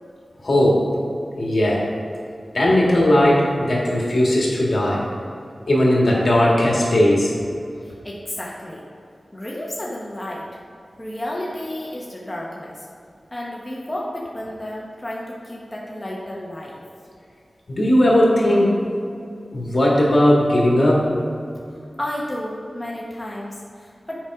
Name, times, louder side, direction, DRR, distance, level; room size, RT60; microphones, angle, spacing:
voice 1, 0.4-0.9 1.4-1.9 2.5-5.1 5.7-7.3 17.7-18.7 19.5-21.2, left 1 dB, 60° left, -3 dB, 1.8 m, -17 dB
voice 2, 7.8-8.9 9.3-10.5 11.0-12.9 13.3-16.8 22.0-24.2, left 1 dB, 20° left, -4 dB, 1.1 m, -32 dB
7.3 x 5.1 x 4.8 m, 2.4 s
wide cardioid pair, 55°, 0 cm